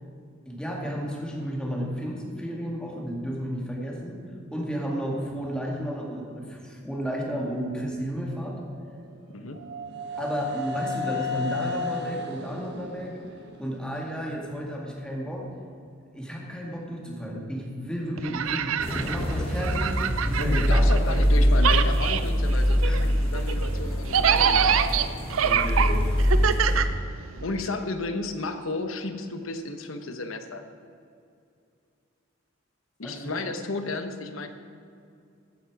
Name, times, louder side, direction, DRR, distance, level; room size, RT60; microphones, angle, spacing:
voice 1, 0.5-4.2 4.5-8.6 10.2-13.2 13.6-15.5 16.1-21.6 22.8-23.0 25.2-26.2 26.6-26.8 33.0-33.4, equal, 5° left, -2 dB, 2.1 m, -33 dB
sound 1, 8.7-14.6, left 2 dB, 60° right, 1.4 m, -34 dB
voice 2, 9.3-9.6 20.4-24.8 27.4-30.6 33.0-34.5, left 2 dB, 85° left, 7 dB, 1.0 m, -33 dB
sound 2, 18.2-21.3 21.6-27.6, right 8 dB, 90° right, 0.6 m, -26 dB
sound 3, 18.8-26.8, equal, 30° left, 2.2 m, -24 dB
14.5 x 8.8 x 4.8 m, 2.5 s
head